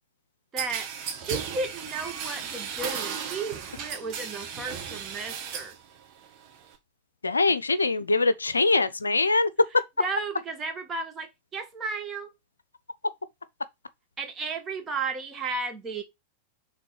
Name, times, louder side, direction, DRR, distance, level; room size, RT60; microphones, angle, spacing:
voice 1, 0.5-0.9 1.1-5.7 10.0-12.3 14.2-16.0, right 4 dB, 20° right, 1.4 m, -34 dB
sound 1, 0.6-5.8 6.1-6.8, right 7 dB, 40° right, 1.6 m, -35 dB
voice 2, 7.2-9.5, left 3 dB, 75° left, 0.5 m, -23 dB
6.0 x 3.6 x 4.8 m
figure-of-eight pair, 90°, 0 cm